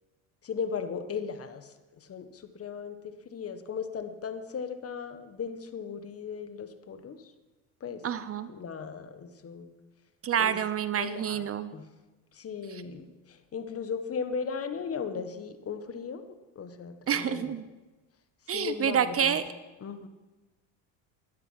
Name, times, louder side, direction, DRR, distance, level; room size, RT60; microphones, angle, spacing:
voice 1, 0.4-7.2 7.8-8.0 8.5-9.7 10.4-10.6 11.0-11.9 12.3-16.2 16.5-17.5 18.5-19.4 19.8-20.1, left 6 dB, 35° left, 10 dB, 1.3 m, -37 dB
voice 2, 8.0-8.5 10.2-11.7 12.7-12.8 17.1-17.6 18.5-19.4, right 8 dB, 35° right, 14 dB, 0.7 m, -28 dB
12.0 x 12.0 x 5.9 m, 1.2 s
supercardioid pair, 85°, 41 cm